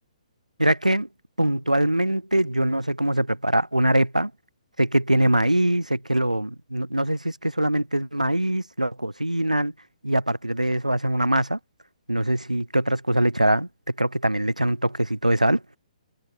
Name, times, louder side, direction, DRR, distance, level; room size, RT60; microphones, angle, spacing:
voice 1, 0.6-1.1 1.4-4.3 4.8-9.7 10.0-11.6 12.1-15.6, right 1 dB, 85° right, 3.0 m, -23 dB
figure-of-eight pair, 130°, 4 cm